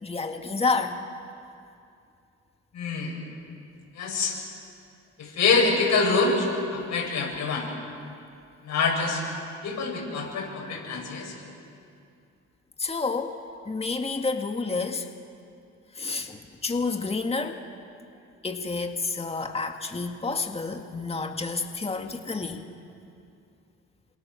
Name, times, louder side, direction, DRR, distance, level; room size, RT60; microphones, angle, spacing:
voice 1, 0.0-1.0 12.8-13.4 13.7-15.1 15.9-17.7 18.4-22.7, left 4 dB, 20° left, 4 dB, 1.9 m, -29 dB
voice 2, 2.7-3.2 4.0-4.3 5.2-7.7 8.6-9.2 9.6-11.3, left 4 dB, 65° left, -1 dB, 8.0 m, -25 dB
28.0 x 26.0 x 7.2 m, 2.5 s
cardioid pair, 90°, 30 cm